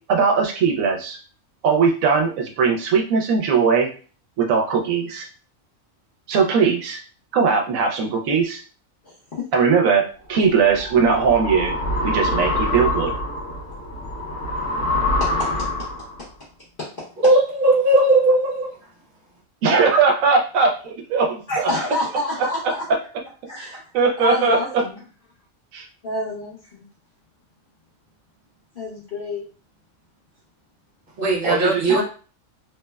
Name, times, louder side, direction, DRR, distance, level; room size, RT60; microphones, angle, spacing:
voice 1, 0.1-1.2 1.6-3.9 4.4-5.3 6.3-7.0 7.3-8.6 9.5-10.0 10.3-11.7 12.0-13.1 19.6-21.7 23.6-23.7 23.9-24.6 25.7-25.9 31.4-32.0, right 5 dB, 80° right, 2 dB, 1.0 m, -19 dB
voice 2, 9.0-9.5 15.2-15.5 16.8-16.9 21.5-22.9 23.5-23.8 24.2-25.0 26.0-26.8 28.7-29.4 31.9-32.0, left 1 dB, 45° left, -7 dB, 0.9 m, -28 dB
sound 1, 10.4-16.2, left 1 dB, 60° left, 1.2 m, -25 dB
voice 3, 17.2-18.7 31.2-32.0, right 2 dB, 45° right, -4 dB, 1.1 m, -17 dB
3.0 x 2.1 x 2.2 m, 0.38 s
omnidirectional pair, 1.4 m